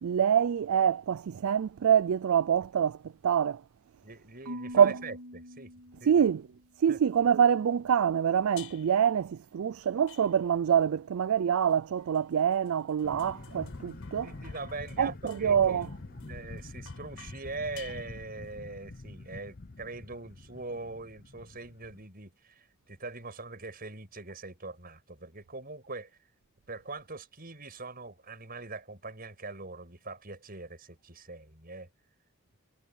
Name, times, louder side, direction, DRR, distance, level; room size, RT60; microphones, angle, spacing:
voice 1, 0.0-3.0 3.2-3.6 4.7-5.0 6.1-6.5 6.8-14.3 15.0-15.9, right 8 dB, 70° right, 0.3 m, -25 dB
voice 2, 4.0-5.7 6.0-6.3 6.9-7.0 14.2-26.2 26.7-31.9, right 3 dB, 40° right, 6.4 m, -42 dB
Marimba xylophone / Wood, 4.4-6.6, equal, 90° right, 2.9 m, -43 dB
sound 1, 8.6-9.1 10.1-10.7 11.7-18.5, left 10 dB, 70° left, 5.5 m, -54 dB
sound 2, 13.0-22.0, left 2 dB, 40° left, 0.7 m, -46 dB
head